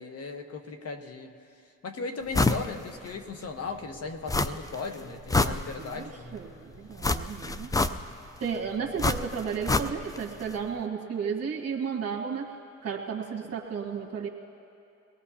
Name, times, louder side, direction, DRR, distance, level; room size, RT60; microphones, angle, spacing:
voice 1, 0.0-1.3 1.8-6.4, left 4 dB, 55° left, 6 dB, 1.2 m, -37 dB
sound 1, 2.3-2.7 3.1-3.2 4.3-4.8 5.1-6.1 7.0-8.3 9.0-10.2 10.5-10.6, left 3 dB, 10° left, 0.4 m, -26 dB
voice 2, 5.8-7.7 8.4-12.5 12.8-14.3, right 6 dB, 55° right, -2 dB, 1.5 m, -33 dB
23.0 x 17.5 x 2.8 m, 2.6 s
cardioid pair, 90°, 30 cm